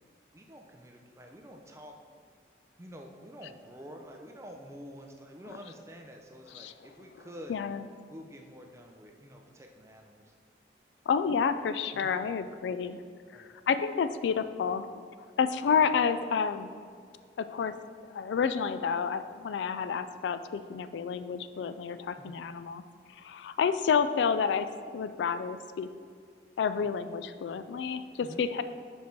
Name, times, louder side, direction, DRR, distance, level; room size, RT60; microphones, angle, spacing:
voice 1, 0.3-2.0 2.8-7.5 8.1-10.3 11.9-12.2 13.3-13.5 22.2-22.4 28.2-28.4, equal, 15° right, 2 dB, 0.5 m, -48 dB
voice 2, 7.5-7.9 11.1-13.0 13.3-14.9 15.4-16.7 17.4-17.7 18.1-22.8 23.1-24.7 24.9-25.9 26.6-28.6, left 6 dB, 85° left, 12 dB, 0.3 m, -29 dB
5.4 x 5.1 x 4.5 m, 2.1 s
head